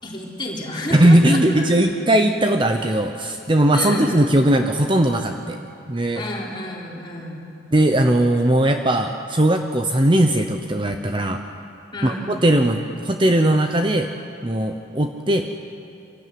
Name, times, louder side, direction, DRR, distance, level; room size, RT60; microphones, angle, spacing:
voice 1, 0.0-1.8 2.9-3.0 3.7-4.3 6.2-7.5 11.9-12.3, left 1 dB, 25° left, -4 dB, 4.0 m, -31 dB
voice 2, 0.9-5.6 5.9-6.2 7.7-11.4 12.0-14.1 14.4-15.5, right 1 dB, 25° right, 5 dB, 0.8 m, -18 dB
25.5 x 16.0 x 9.5 m, 2.7 s
head